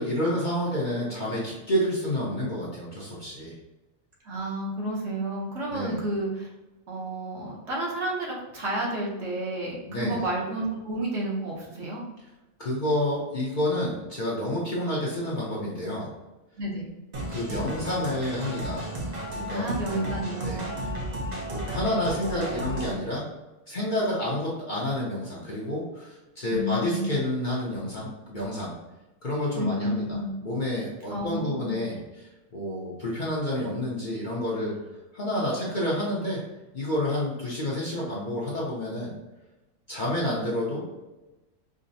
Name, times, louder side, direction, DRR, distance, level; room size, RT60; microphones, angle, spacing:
voice 1, 0.0-3.5 5.7-6.0 9.9-10.2 12.6-16.1 17.3-18.9 19.3-20.1 20.4-20.9 21.5-23.3 23.7-28.8 29.2-34.8 35.1-36.4 36.7-39.1 39.9-40.8, left 1 dB, 45° left, -6 dB, 0.8 m, -29 dB
voice 2, 4.2-6.5 6.9-12.0 16.6-16.9 19.5-20.7 26.5-27.1 29.6-30.3 31.1-31.7, right 1 dB, 55° right, -4 dB, 1.1 m, -31 dB
sound 1, 17.1-23.0, equal, 40° right, 0.6 m, -33 dB
4.9 x 2.1 x 2.6 m, 1.1 s
omnidirectional pair, 1.4 m